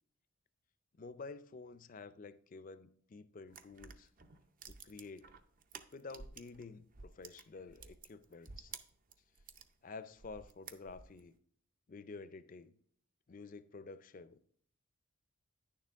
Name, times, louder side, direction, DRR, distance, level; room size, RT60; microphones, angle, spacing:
voice 1, 1.0-4.1 4.7-5.4 5.9-8.7 9.8-11.3 11.9-12.7 13.3-14.6, left 4 dB, 40° left, 0.4 m, -50 dB
sound 1, 3.5-6.6 6.9-9.7 10.2-11.3, right 5 dB, 40° right, 0.6 m, -52 dB
9.8 x 6.7 x 3.5 m
head